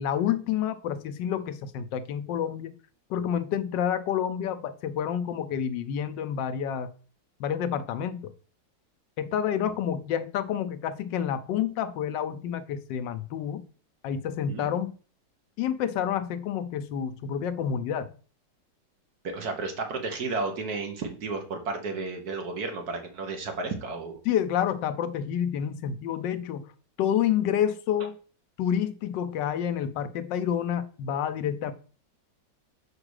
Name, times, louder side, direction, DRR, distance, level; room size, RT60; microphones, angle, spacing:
voice 1, 0.0-2.7 3.1-6.9 7.4-8.3 9.2-13.6 14.0-14.9 15.6-18.1 24.2-26.7 27.0-28.2 28.6-31.7, left 9 dB, 80° left, 1.4 m, -29 dB
voice 2, 19.2-24.2, right 3 dB, 60° right, 1.7 m, -32 dB
5.2 x 4.8 x 6.4 m
omnidirectional pair, 1.9 m